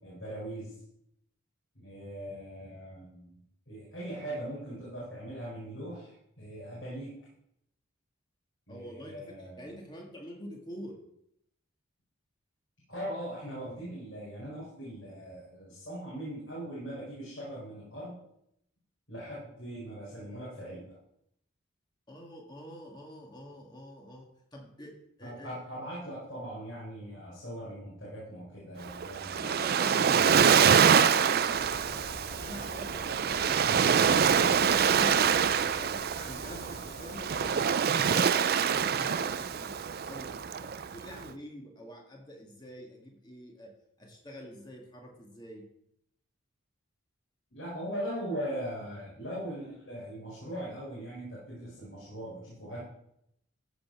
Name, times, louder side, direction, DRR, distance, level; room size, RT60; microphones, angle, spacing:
voice 1, 0.0-0.7 1.7-7.1 8.7-9.7 12.9-18.2 19.1-21.0 25.2-29.5 47.5-52.8, equal, 60° left, -7 dB, 4.7 m, -40 dB
voice 2, 8.7-9.1 9.4-10.9 22.1-24.3 24.5-24.9 25.2-25.5 29.4-32.0 32.4-34.2 34.7-35.3 35.6-39.7 40.0-43.7 44.0-45.6, equal, 20° left, 0 dB, 1.8 m, -46 dB
Waves surf, 28.8-41.2, right 7 dB, 45° right, 0.4 m, -25 dB
sound 1, 31.5-37.5, left 1 dB, 40° left, 1.2 m, -46 dB
14.5 x 5.3 x 6.0 m, 0.76 s
head